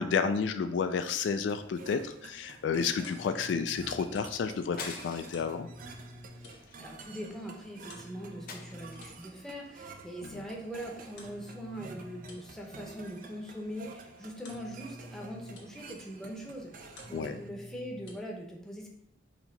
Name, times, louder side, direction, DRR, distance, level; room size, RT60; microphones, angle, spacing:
voice 1, 0.0-5.7 10.2-10.4 17.1-17.4, left 5 dB, 70° left, 9 dB, 0.3 m, -31 dB
sound 1, 1.5-17.5, right 4 dB, 50° right, 0.4 m, -50 dB
sound 2, 2.5-18.1, left 1 dB, 90° left, 1.1 m, -52 dB
sound 3, 4.8-5.5 6.0-6.2 6.5-7.5 8.5-9.2, left 4 dB, 50° left, 0.7 m, -44 dB
voice 2, 6.5-18.9, equal, ahead, -2 dB, 0.8 m, -42 dB
4.3 x 2.9 x 4.0 m, 0.71 s
head